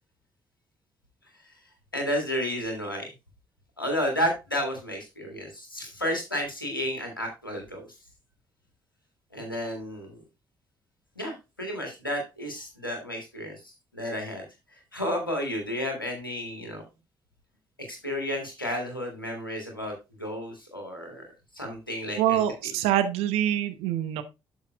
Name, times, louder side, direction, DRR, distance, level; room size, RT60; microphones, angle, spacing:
voice 1, 1.9-3.1 3.8-7.9 9.3-10.2 11.2-16.8 17.8-21.2 21.5-22.4, equal, 90° left, 2 dB, 1.8 m, -32 dB
voice 2, 22.2-24.2, right 11 dB, 65° right, 10 dB, 0.9 m, -25 dB
12.0 x 5.7 x 2.4 m, 0.25 s
figure-of-eight pair, 40°, 11 cm